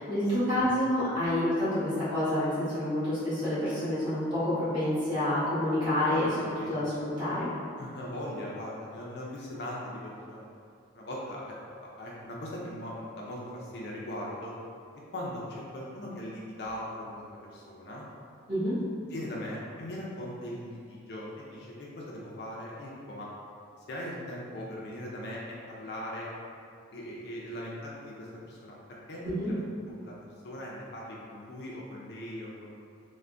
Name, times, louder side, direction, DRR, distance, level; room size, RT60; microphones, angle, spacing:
voice 1, 0.0-7.5 18.5-18.8 29.2-29.5, left 1 dB, 25° right, -14 dB, 1.2 m, -28 dB
voice 2, 0.6-1.0 6.5-6.7 7.8-10.5 10.9-14.5 15.1-17.2 17.5-18.0 19.1-23.3 23.9-26.3 26.9-28.8 29.1-30.1 30.4-32.9, left 1 dB, 55° left, -5 dB, 0.4 m, -40 dB
3.3 x 2.1 x 2.5 m, 2.4 s
head